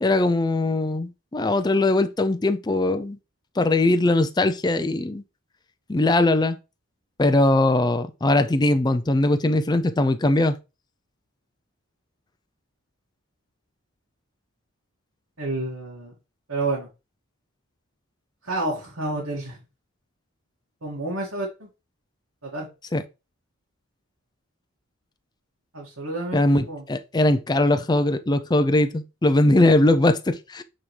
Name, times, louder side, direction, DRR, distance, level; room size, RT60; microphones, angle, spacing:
voice 1, 0.0-3.2 3.6-5.2 5.9-6.6 7.2-10.5 22.9-23.0 26.3-30.6, left 2 dB, 20° left, 0.4 m, -20 dB
voice 2, 15.4-16.1 16.5-16.9 18.4-19.6 20.8-21.7 22.4-22.7 25.7-26.8, right 2 dB, 80° right, 2.1 m, -29 dB
8.6 x 3.6 x 3.3 m
head